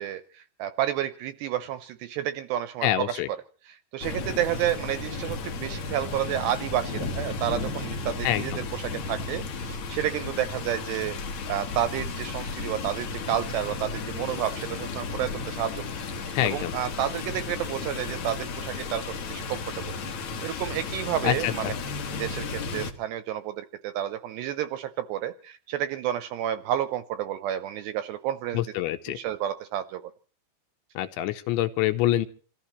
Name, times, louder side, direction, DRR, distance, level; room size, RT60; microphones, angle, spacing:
voice 1, 0.0-3.4 3.7-11.2 11.5-15.9 16.2-19.9 20.4-21.7 22.1-28.6 29.1-30.0, right 11 dB, 80° right, 11 dB, 2.6 m, -30 dB
voice 2, 2.8-3.3 8.2-8.4 16.3-16.7 21.2-21.7 28.5-29.2 31.0-32.3, left 13 dB, 75° left, 10 dB, 3.1 m, -26 dB
sound 1, 4.0-22.9, left 4 dB, 55° left, 2.2 m, -34 dB
27.5 x 15.0 x 3.2 m, 0.42 s
omnidirectional pair, 5.7 m